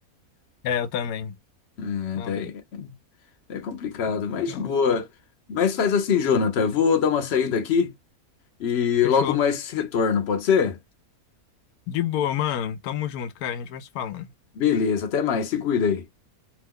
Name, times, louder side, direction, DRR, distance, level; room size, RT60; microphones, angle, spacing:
voice 1, 0.6-1.3 2.2-2.5 4.5-4.7 9.0-9.4 11.9-14.3, left 9 dB, 85° left, 1.1 m, -29 dB
voice 2, 1.8-2.9 3.5-5.1 5.5-7.9 8.6-10.8 14.6-16.0, left 6 dB, 55° left, 0.8 m, -23 dB
3.0 x 2.1 x 3.5 m
omnidirectional pair, 1.5 m